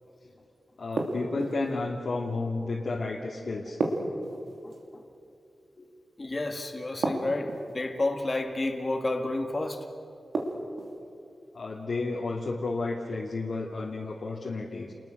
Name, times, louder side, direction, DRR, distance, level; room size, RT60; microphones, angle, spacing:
voice 1, 0.8-3.8 11.5-14.9, left 3 dB, 60° left, -3 dB, 2.4 m, -32 dB
sound 1, 1.0-1.7 3.8-4.8 7.0-7.8 10.3-11.0, right 3 dB, 85° right, 3.1 m, -31 dB
voice 2, 4.0-5.0 5.8-5.9 6.2-9.9, left 2 dB, 30° left, 4 dB, 1.9 m, -31 dB
29.5 x 21.0 x 6.7 m, 2.6 s
wide cardioid pair, 125°, 0 cm